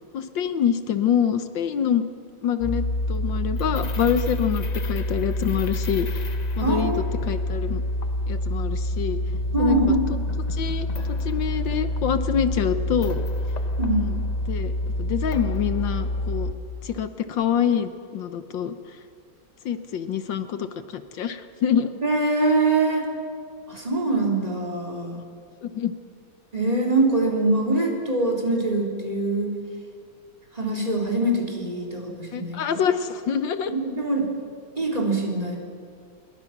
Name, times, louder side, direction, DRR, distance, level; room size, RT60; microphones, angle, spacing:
voice 1, 0.1-2.0 2.4-6.2 6.6-7.8 8.3-9.2 9.6-9.9 10.5-10.9 11.2-13.2 13.9-14.2 14.5-16.5 16.8-18.8 19.6-22.0 25.6-25.9 32.3-33.7, left 8 dB, 65° left, 10 dB, 1.5 m, -26 dB
sound 1, 2.6-16.5, left 1 dB, 40° left, 0.6 m, -27 dB
voice 2, 6.6-7.0 9.5-10.2 13.8-14.1 22.0-23.1 23.7-25.2 26.5-29.5 30.6-32.8 33.7-34.3 34.8-35.6, right 2 dB, 15° right, -1 dB, 3.7 m, -23 dB
26.0 x 22.0 x 6.0 m, 2.2 s
omnidirectional pair, 2.3 m